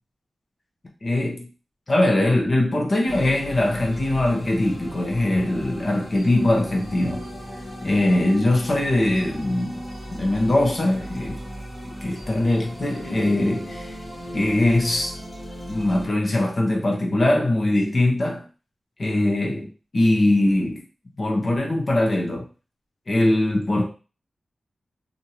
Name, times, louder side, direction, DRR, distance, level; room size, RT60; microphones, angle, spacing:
voice 1, 1.0-1.5 1.9-7.3 7.8-9.8 10.1-11.4 12.0-14.0 14.3-15.2 15.7-18.4 19.0-20.8 21.2-22.4 23.1-23.8, left 1 dB, 45° left, 1.0 m, -21 dB
sound 1, 3.1-16.1, equal, 25° left, 1.5 m, -37 dB
3.1 x 2.6 x 2.8 m
wide cardioid pair, 110°, 0 cm